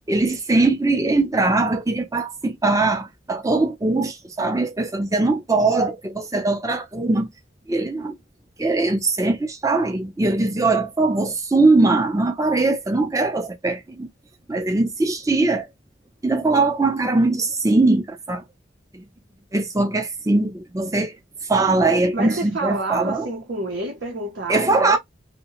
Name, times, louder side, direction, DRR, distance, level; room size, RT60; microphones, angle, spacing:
voice 1, 0.1-7.3 7.7-8.1 8.6-14.1 14.5-15.7 16.2-18.4 18.9-19.0 19.5-21.1 21.5-23.3 24.5-25.0, right 2 dB, 15° right, 0.5 m, -21 dB
voice 2, 22.1-25.0, right 2 dB, 65° right, 0.7 m, -28 dB
2.7 x 2.1 x 2.9 m
head